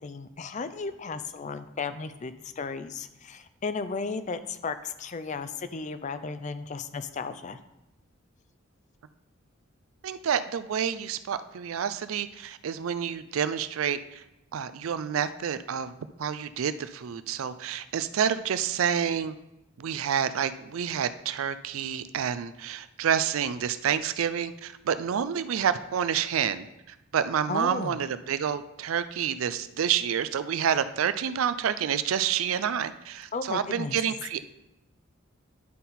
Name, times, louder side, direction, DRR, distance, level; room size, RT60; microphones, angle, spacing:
voice 1, 0.0-7.6 27.5-28.0 33.3-34.0, left 4 dB, 35° left, 11 dB, 0.4 m, -34 dB
voice 2, 10.0-14.2 14.5-15.9 16.2-19.3 19.8-26.7 27.1-34.4, right 8 dB, 80° right, 13 dB, 0.4 m, -28 dB
11.0 x 4.0 x 4.2 m, 0.90 s
head